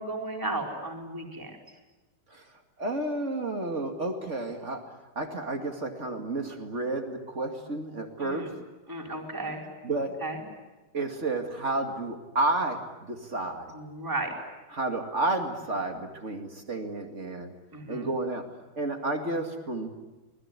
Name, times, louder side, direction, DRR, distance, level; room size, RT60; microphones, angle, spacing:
voice 1, 0.0-1.6 8.2-8.5 8.9-9.6 10.2-10.4 13.7-14.3 17.7-18.1, right 2 dB, 5° right, 0 dB, 3.9 m, -34 dB
voice 2, 2.8-4.8 5.1-8.5 9.8-10.1 10.9-13.8 14.7-17.5 17.9-18.4 18.7-19.9, right 2 dB, 40° right, 4 dB, 1.0 m, -31 dB
26.5 x 21.0 x 9.8 m, 1.1 s
omnidirectional pair, 5.0 m